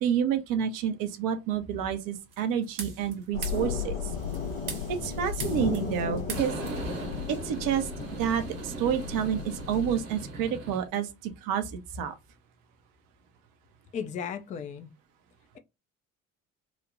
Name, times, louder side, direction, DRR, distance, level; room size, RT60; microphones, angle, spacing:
voice 1, 0.0-3.9 4.9-6.5 7.3-7.9 8.2-12.2, right 8 dB, 55° right, 0.6 m, -29 dB
sound 1, 2.3-3.1 3.4-3.7 4.1-6.0 6.3-10.9, right 4 dB, 70° right, 1.1 m, -39 dB
sound 2, 3.3-10.0, left 6 dB, 85° left, 0.8 m, -35 dB
voice 2, 13.9-14.9, left 7 dB, 20° left, 0.3 m, -35 dB
3.0 x 2.1 x 2.5 m
figure-of-eight pair, 55°, 41 cm